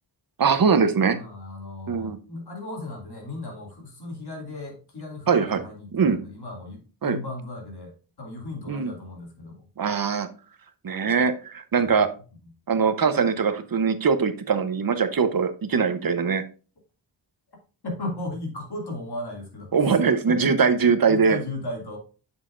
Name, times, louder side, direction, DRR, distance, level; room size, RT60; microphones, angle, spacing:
voice 1, 0.4-1.2 1.9-2.2 5.3-5.6 5.9-6.2 7.0-7.2 8.7-8.9 9.8-10.3 10.8-12.1 12.7-16.4 19.7-21.4, right 5 dB, 50° right, 10 dB, 0.9 m, -22 dB
voice 2, 1.1-9.7 17.8-20.0 20.3-20.5 21.1-22.0, left 2 dB, 55° left, 1 dB, 2.6 m, -36 dB
7.3 x 6.6 x 2.5 m, 0.34 s
wide cardioid pair, 105°, 47 cm